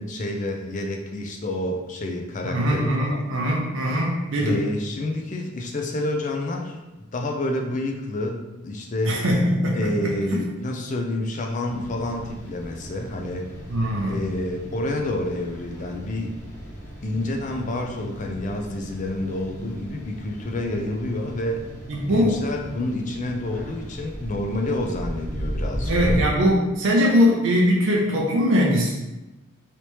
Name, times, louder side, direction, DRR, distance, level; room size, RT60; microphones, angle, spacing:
voice 1, 0.0-3.2 4.4-6.8 7.1-9.2 9.7-13.5 14.1-16.4 17.0-21.7 22.1-25.9, left 1 dB, 35° left, 2 dB, 0.4 m, -28 dB
voice 2, 2.4-4.6 9.1-10.4 13.7-14.2 21.9-22.3 22.7-22.8 25.9-28.9, equal, 60° right, -3 dB, 0.5 m, -21 dB
sound 1, 11.7-26.2, equal, 15° left, 1.0 m, -36 dB
3.3 x 2.8 x 3.0 m, 1.0 s
head